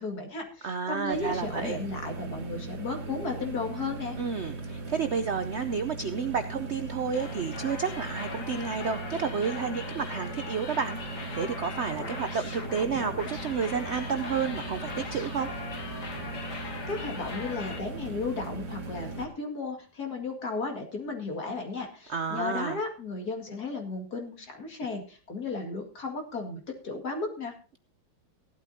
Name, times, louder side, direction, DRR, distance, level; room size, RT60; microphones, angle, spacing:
voice 1, 0.0-4.2 16.5-27.5, left 3 dB, 50° left, 3 dB, 2.6 m, -34 dB
voice 2, 0.6-1.8 4.2-15.5 22.1-22.8, right 6 dB, 85° right, 9 dB, 0.6 m, -31 dB
sound 1, 1.1-19.3, right 3 dB, 60° right, 2.4 m, -39 dB
sound 2, 7.1-17.8, left 4 dB, 80° left, 2.5 m, -40 dB
sound 3, 13.0-19.2, left 3 dB, 25° left, 1.8 m, -50 dB
16.5 x 12.0 x 2.8 m, 0.36 s
omnidirectional pair, 2.1 m